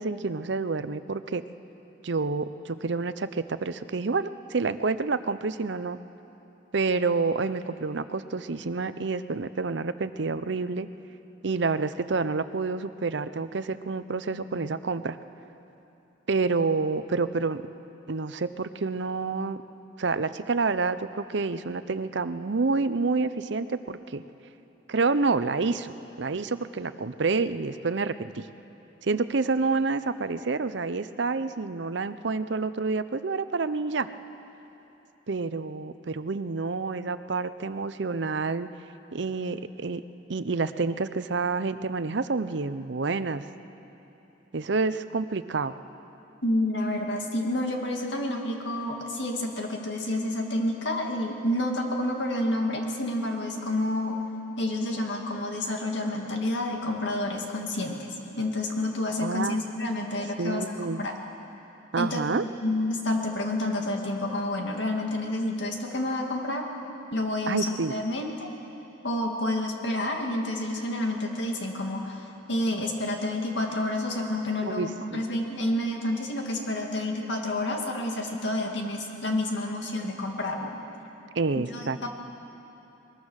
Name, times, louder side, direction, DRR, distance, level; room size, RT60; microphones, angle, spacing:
voice 1, 0.0-1.4 2.0-6.0 6.7-10.9 11.4-15.2 16.3-17.6 18.1-19.6 20.0-24.2 24.9-25.9 26.2-28.5 29.0-34.1 35.3-38.7 39.1-40.0 40.3-43.4 44.5-45.7 59.2-59.6 60.4-61.0 61.9-62.4 67.5-67.9 74.6-75.2 81.4-82.1, right 4 dB, 60° right, 12 dB, 0.6 m, -28 dB
voice 2, 46.4-54.2 54.6-58.1 58.4-61.1 62.0-62.2 62.6-66.6 67.1-68.5 69.0-80.8 81.7-82.1, left 1 dB, 60° left, 1 dB, 2.3 m, -29 dB
22.0 x 21.5 x 6.4 m, 3.0 s
head